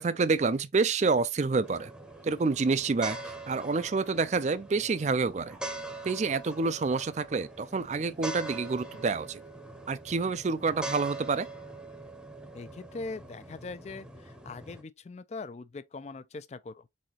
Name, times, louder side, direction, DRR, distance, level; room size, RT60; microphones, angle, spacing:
voice 1, 0.0-1.9 2.2-5.6 6.0-9.4 9.9-11.5, right 4 dB, 40° right, 0.4 m, -28 dB
sound 1, 1.6-14.8, right 2 dB, 5° right, 0.7 m, -43 dB
voice 2, 12.5-16.9, left 3 dB, 35° left, 0.4 m, -41 dB
4.2 x 3.8 x 3.0 m
head